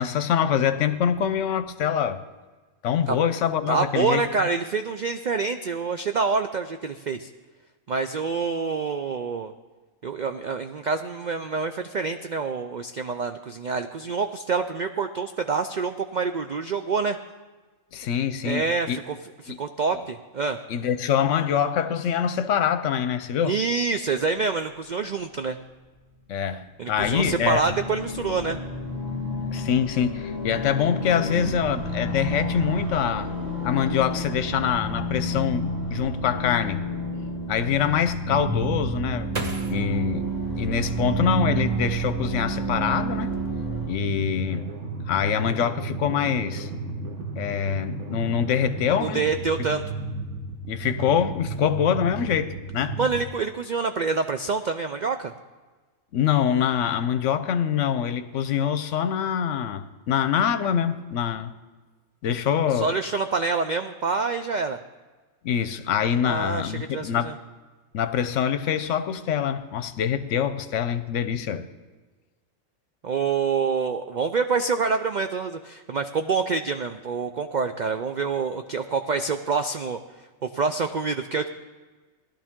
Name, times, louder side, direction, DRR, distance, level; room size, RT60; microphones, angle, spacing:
voice 1, 0.0-2.2 2.8-4.5 17.9-19.0 19.5-19.6 20.7-23.6 26.3-27.6 29.5-33.3 33.6-36.8 37.5-39.3 39.7-40.2 40.5-43.3 43.9-44.7 45.1-46.7 47.4-49.3 50.7-53.0 56.1-61.5 62.2-62.9 65.4-67.3 67.9-71.6, left 8 dB, 65° left, 11 dB, 1.0 m, -25 dB
voice 2, 3.7-7.3 7.9-9.5 10.0-17.2 18.4-19.2 19.4-20.6 23.4-25.6 26.8-28.6 49.0-49.8 53.0-55.3 62.7-64.8 66.2-67.3 73.0-80.0 80.4-81.5, right 4 dB, 80° right, 7 dB, 0.4 m, -26 dB
sound 1, 27.0-43.9, right 1 dB, 15° right, 5.1 m, -30 dB
sound 2, 38.3-41.4 41.9-42.7 43.0-43.5, right 2 dB, 30° right, 1.2 m, -37 dB
sound 3, 44.0-53.3, right 2 dB, 60° right, 1.5 m, -34 dB
17.5 x 12.0 x 3.7 m, 1.3 s
omnidirectional pair, 1.5 m